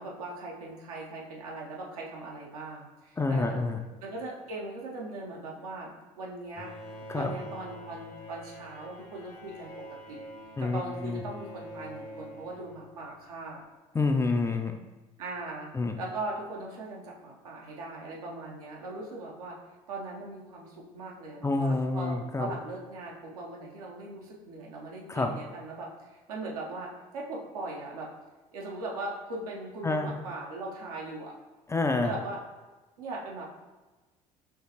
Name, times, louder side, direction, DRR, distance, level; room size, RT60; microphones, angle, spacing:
voice 1, 0.0-3.7 4.0-6.7 7.1-9.7 10.1-10.2 10.6-13.6 15.2-15.7 16.0-19.6 19.9-28.1 28.5-31.3 32.0-32.4 33.0-33.5, right 2 dB, 75° right, -2 dB, 0.8 m, -39 dB
voice 2, 3.2-3.8 7.1-7.3 10.6-11.2 13.9-14.8 15.7-16.0 21.4-22.5 25.1-25.3 29.8-30.1 31.7-32.1, left 3 dB, 15° left, 5 dB, 0.4 m, -28 dB
Bowed string instrument, 6.6-13.3, equal, 55° left, 0.8 m, -45 dB
4.6 x 3.1 x 2.8 m, 1.2 s
figure-of-eight pair, 60°, 19 cm